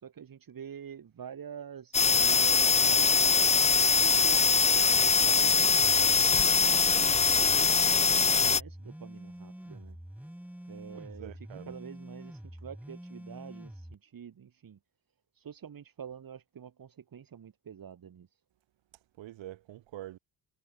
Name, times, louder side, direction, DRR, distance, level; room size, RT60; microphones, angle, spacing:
voice 1, 0.0-4.4 4.8-10.0 10.7-11.3 11.7-14.8 15.4-18.3, right 8 dB, 45° right, 3.5 m, -46 dB
sound 1, 1.9-8.6, left 5 dB, 15° left, 0.5 m, -23 dB
voice 2, 4.3-4.6 10.9-11.7 19.2-20.2, right 14 dB, 70° right, 3.4 m, -46 dB
sound 2, 5.4-13.9, equal, 5° right, 4.7 m, -46 dB
supercardioid pair, 75°, 46 cm